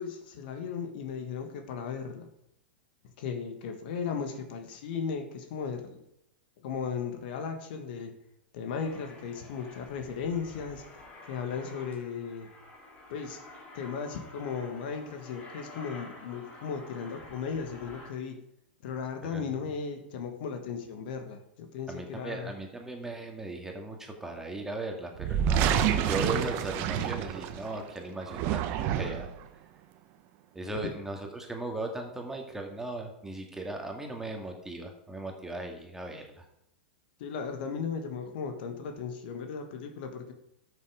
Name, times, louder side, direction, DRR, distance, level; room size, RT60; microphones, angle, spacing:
voice 1, 0.0-2.3 3.2-6.0 6.6-8.1 8.5-10.8 11.3-12.5 13.1-13.4 13.7-18.4 18.8-22.5 30.8-30.9 37.2-40.3, left 6 dB, 60° left, 6 dB, 1.7 m, -36 dB
Aircraft, 8.8-18.1, left 2 dB, 25° left, 3.5 m, -50 dB
voice 2, 21.9-25.8 26.1-29.3 30.5-36.5, right 2 dB, 5° right, 2 dB, 2.1 m, -37 dB
sound 1, 25.2-27.7 28.2-29.4, right 9 dB, 45° right, 1.1 m, -28 dB
12.5 x 6.9 x 5.0 m, 0.80 s
hypercardioid pair, 110°, 6 cm